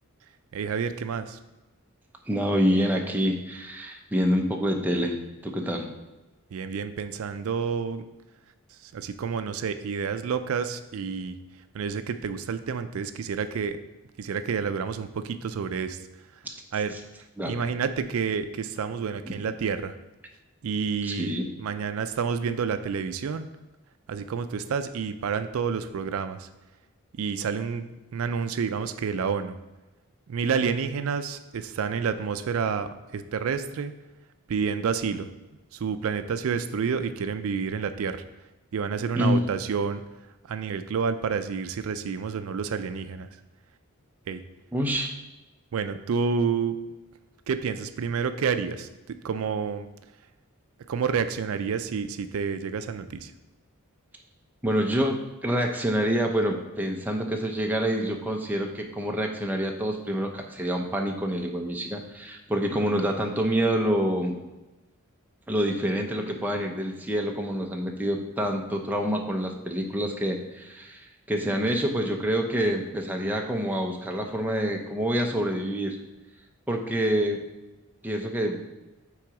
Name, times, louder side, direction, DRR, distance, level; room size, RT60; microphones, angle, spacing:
voice 1, 0.5-1.4 6.5-8.0 8.8-11.4 11.7-13.8 14.2-16.0 16.7-16.9 17.4-19.9 20.6-23.5 24.1-26.5 27.2-29.6 30.3-33.9 34.5-35.3 35.7-38.2 38.7-40.0 40.4-43.3 44.3-44.4 45.7-46.8 47.5-49.9 50.9-53.3, right 6 dB, 70° right, 10 dB, 0.4 m, -29 dB
voice 2, 2.3-5.2 5.4-5.9 17.4-17.6 19.3-19.4 21.0-21.5 39.1-39.4 44.7-45.1 54.6-64.3 65.5-76.0 76.7-77.4 78.0-78.6, equal, 10° right, 2 dB, 0.5 m, -27 dB
6.0 x 3.9 x 4.7 m, 1.1 s
head